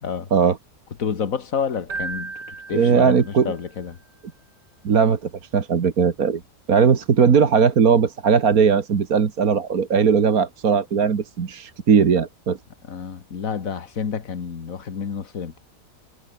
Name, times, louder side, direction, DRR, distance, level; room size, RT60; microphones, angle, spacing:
voice 1, 1.0-4.0 12.9-15.6, left 6 dB, 55° left, 2.0 m, -29 dB
Keyboard (musical), 1.9-3.7, right 4 dB, 90° right, 4.4 m, -35 dB
voice 2, 2.7-3.5 4.8-6.4 6.7-12.6, right 6 dB, 60° right, 2.0 m, -18 dB
omnidirectional pair, 1.8 m